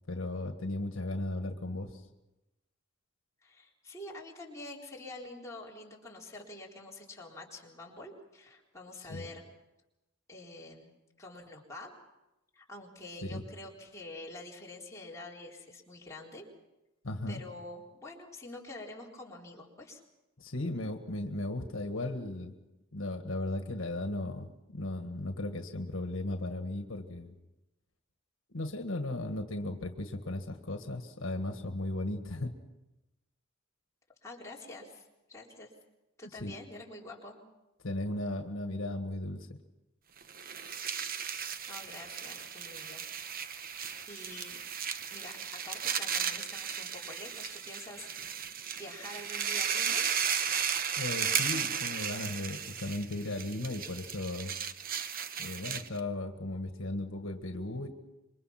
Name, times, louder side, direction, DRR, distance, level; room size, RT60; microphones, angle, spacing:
voice 1, 0.1-2.0 9.1-9.3 13.2-13.4 17.0-17.4 20.4-22.6 22.9-27.3 28.5-32.5 36.4-36.5 37.8-39.6 51.0-54.5 55.4-57.9, left 2 dB, 75° left, 6 dB, 1.7 m, -36 dB
voice 2, 3.4-9.4 10.3-10.9 11.2-11.9 12.5-16.5 17.3-20.0 34.2-35.7 36.2-37.4 41.7-43.0 43.7-44.6 45.1-50.0, left 2 dB, 15° left, -3 dB, 4.0 m, -47 dB
sound 1, 40.2-56.0, right 7 dB, 45° right, 1.0 m, -35 dB
26.5 x 23.0 x 5.9 m, 0.98 s
head